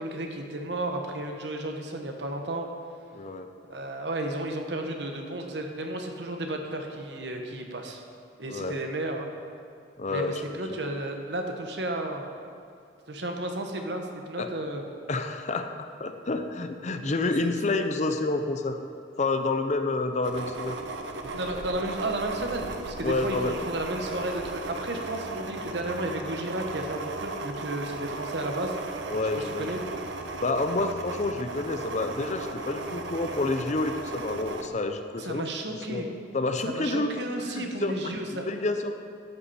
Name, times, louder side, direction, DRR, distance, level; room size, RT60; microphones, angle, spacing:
voice 1, 0.0-2.7 3.7-8.0 8.4-9.3 10.1-12.2 13.1-14.8 17.0-17.1 21.3-28.7 29.3-29.8 35.2-36.1 36.7-38.4, right 1 dB, 70° right, 3 dB, 1.2 m, -33 dB
voice 2, 3.1-3.5 8.5-8.8 10.0-10.4 14.4-14.5 15.1-15.7 16.0-18.8 19.2-20.8 23.0-23.6 29.1-30.0 30.4-36.1 36.3-37.2 37.4-39.0, left 2 dB, 40° left, 7 dB, 0.6 m, -29 dB
sound 1, 20.2-34.7, right 3 dB, 90° right, 0.9 m, -36 dB
13.0 x 8.5 x 4.3 m, 2.3 s
head